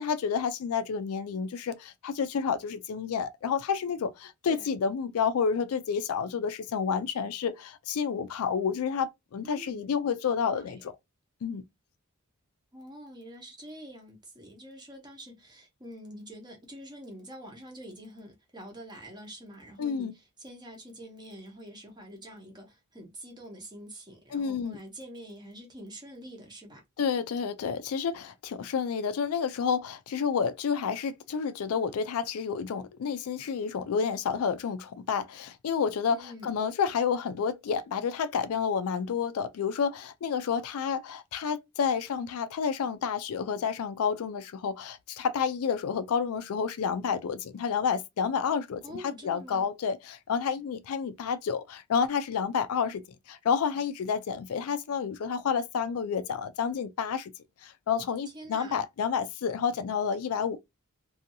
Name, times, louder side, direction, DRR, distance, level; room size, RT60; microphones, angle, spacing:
voice 1, 0.0-10.9 11.4-11.6 19.8-20.1 24.3-24.8 27.0-48.8 49.2-57.3 57.6-60.6, left 6 dB, 80° left, 0.4 m, -30 dB
voice 2, 9.4-9.9 10.3-10.9 12.7-26.8 36.1-36.6 48.8-49.7 58.3-58.8, equal, 20° right, 0.9 m, -46 dB
2.7 x 2.6 x 2.6 m
head